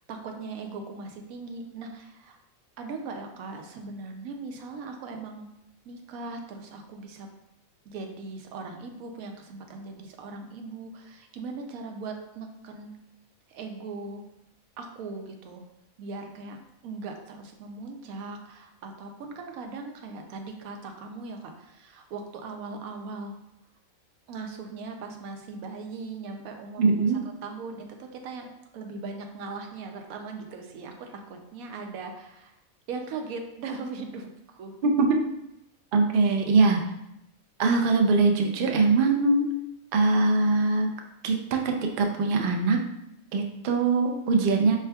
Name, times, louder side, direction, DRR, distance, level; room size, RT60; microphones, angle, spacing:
voice 1, 0.1-2.4 2.8-5.5 5.9-7.3 7.9-12.9 13.5-14.2 14.8-15.6 16.0-16.6 16.8-23.3 24.3-27.0 27.4-32.5 32.9-34.7, right 4 dB, 90° right, 4 dB, 1.1 m, -39 dB
voice 2, 26.8-27.2 34.8-35.1 35.9-36.8 37.6-39.5 39.9-40.9 41.2-42.8 43.3-44.8, right 3 dB, 65° right, 3 dB, 0.5 m, -22 dB
4.6 x 3.4 x 2.2 m, 0.83 s
omnidirectional pair, 1.4 m